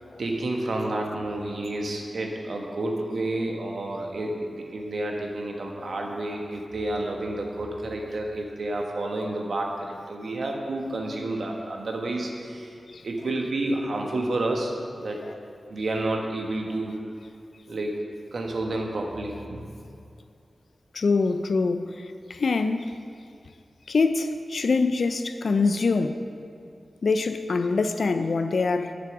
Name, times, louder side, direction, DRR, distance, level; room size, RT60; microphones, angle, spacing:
voice 1, 0.2-12.8 13.0-14.7 15.0-15.2 15.7-17.0 17.7-18.0 18.3-19.6, right 2 dB, 75° right, 1.3 m, -30 dB
voice 2, 5.7-6.1 12.9-13.1 15.2-15.4 20.9-23.0 23.9-26.2 27.0-29.0, left 4 dB, 75° left, 0.5 m, -25 dB
7.5 x 7.0 x 6.0 m
cardioid pair, 50°, 0 cm